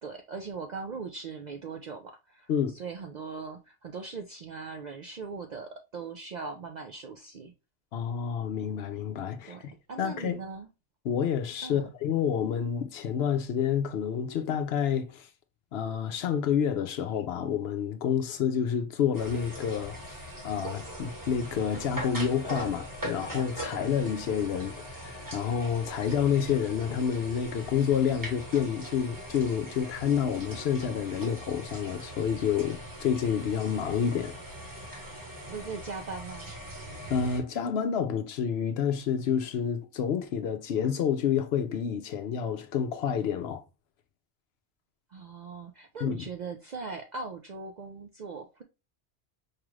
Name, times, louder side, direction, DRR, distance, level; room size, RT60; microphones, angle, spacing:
voice 1, 0.0-7.5 9.4-10.7 11.6-11.9 35.5-36.5 45.1-48.6, right 4 dB, 60° right, 0.4 m, -40 dB
voice 2, 7.9-9.7 10.0-10.4 11.0-15.3 15.7-34.4 37.1-43.6 46.0-46.2, left 7 dB, 70° left, 0.8 m, -29 dB
sound 1, 19.1-37.4, equal, 20° right, 1.0 m, -41 dB
4.8 x 2.4 x 3.1 m
omnidirectional pair, 1.2 m